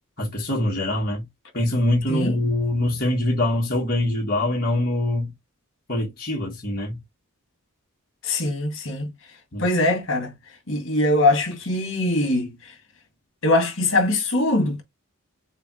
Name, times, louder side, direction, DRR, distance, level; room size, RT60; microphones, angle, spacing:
voice 1, 0.2-1.2 1.5-5.3 5.9-7.0 9.5-9.6, left 1 dB, 45° left, 1.6 m, -24 dB
voice 2, 8.2-9.1 9.6-10.3 10.7-12.5 13.4-14.8, left 2 dB, 60° left, 2.0 m, -22 dB
6.7 x 2.4 x 3.1 m
head